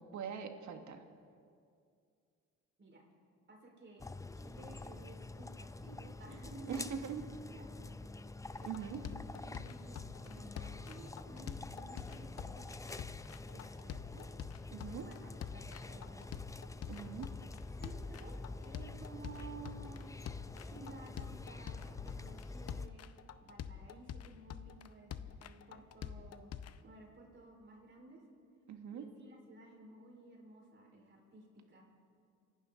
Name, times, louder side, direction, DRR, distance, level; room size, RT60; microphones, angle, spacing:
voice 1, 0.1-1.0 6.7-7.2 8.7-9.0 14.7-15.0 16.9-17.3 28.7-29.0, right 7 dB, 70° right, 6 dB, 1.6 m, -42 dB
voice 2, 3.5-4.1 4.3-7.0 7.5-7.9 8.6-12.7 13.4-14.3 14.9-16.5 17.3-17.5 17.8-18.3 18.6-20.2 20.6-23.1 23.4-25.1 25.4-26.5 26.8-28.2 28.9-31.9, right 3 dB, 40° right, 0 dB, 4.5 m, -54 dB
sound 1, 4.0-22.9, left 2 dB, 10° left, 0.5 m, -47 dB
sound 2, 8.5-26.8, left 9 dB, 55° left, 0.7 m, -46 dB
27.5 x 11.5 x 3.9 m, 2.3 s
cardioid pair, 90°, 30 cm